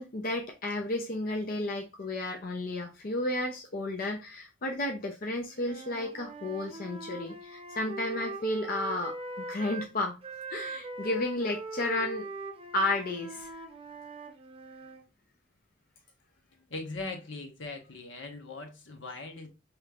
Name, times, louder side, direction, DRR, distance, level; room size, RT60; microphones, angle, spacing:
voice 1, 0.0-10.2 10.5-12.2 12.7-13.5, left 2 dB, 50° left, 0.6 m, -32 dB
Wind instrument woodwind instrument, 5.5-9.9 10.2-15.0, right 3 dB, 30° right, 0.7 m, -41 dB
voice 2, 16.5-19.5, left 3 dB, 70° left, 1.1 m, -40 dB
5.1 x 3.2 x 2.4 m
head